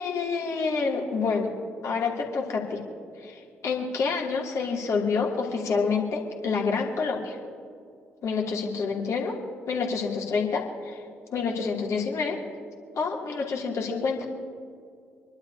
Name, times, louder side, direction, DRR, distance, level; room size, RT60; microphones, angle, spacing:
voice 1, 0.0-1.5 1.8-2.8 3.2-7.4 8.2-9.4 9.7-11.0 11.3-12.4 13.0-14.3, left 5 dB, 55° left, -1 dB, 2.7 m, -28 dB
26.0 x 12.0 x 2.8 m, 2.3 s
figure-of-eight pair, 40°, 6 cm